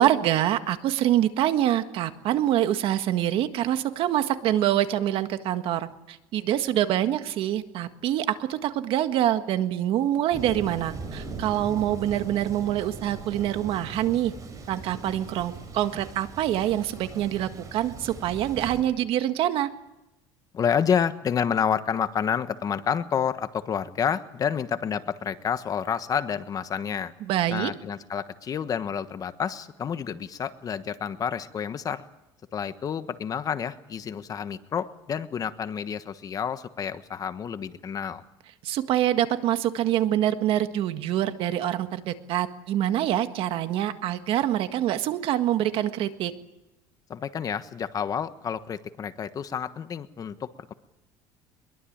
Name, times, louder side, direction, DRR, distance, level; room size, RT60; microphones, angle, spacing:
voice 1, 0.0-14.3 14.7-19.7 27.3-27.7 38.6-46.3, right 12 dB, 60° right, 9 dB, 1.7 m, -25 dB
Thunder, 10.3-18.8, right 3 dB, 35° right, 6.9 m, -40 dB
voice 2, 20.5-27.1 27.5-32.0 32.5-38.2 47.1-50.7, left 7 dB, 35° left, 11 dB, 1.3 m, -29 dB
22.5 x 22.0 x 8.8 m, 0.95 s
cardioid pair, 120°, 10 cm